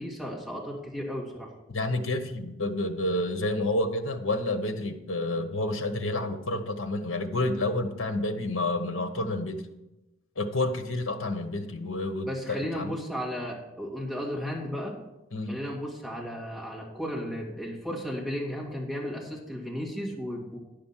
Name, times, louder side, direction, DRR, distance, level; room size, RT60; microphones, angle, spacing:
voice 1, 0.0-1.5 12.2-15.0 15.5-20.6, equal, ahead, -4 dB, 2.2 m, -34 dB
voice 2, 1.7-9.7 10.4-12.9 15.3-15.5, left 2 dB, 70° left, 7 dB, 1.1 m, -29 dB
10.5 x 5.2 x 7.4 m, 0.96 s
head